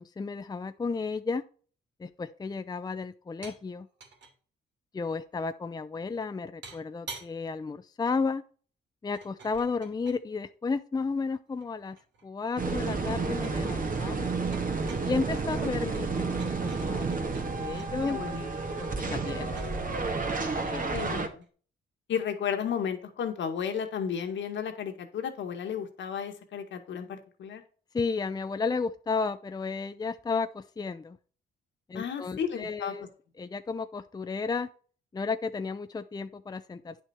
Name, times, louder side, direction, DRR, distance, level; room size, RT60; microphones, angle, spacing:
voice 1, 0.0-1.4 2.0-3.9 4.9-8.4 9.0-12.0 12.2-14.3 15.0-18.2 18.8-19.6 20.4-20.9 27.9-31.2 31.9-33.1 33.4-34.7 35.1-37.0, left 4 dB, 20° left, 10 dB, 0.6 m, -33 dB
sound 1, 3.4-3.6 3.9-4.3 6.6-7.3 9.1-10.3 11.2-12.5 12.8-13.7 14.2-17.9 19.4-21.5, right 4 dB, 65° right, 2.7 m, -49 dB
sound 2, 12.6-21.3, right 4 dB, 40° right, 2.0 m, -31 dB
voice 2, 18.0-18.4 18.8-18.9 20.9-21.4 22.1-27.6 31.9-32.9, left 7 dB, 70° left, 6 dB, 1.9 m, -33 dB
9.6 x 6.1 x 4.5 m, 0.40 s
cardioid pair, 90°, 20 cm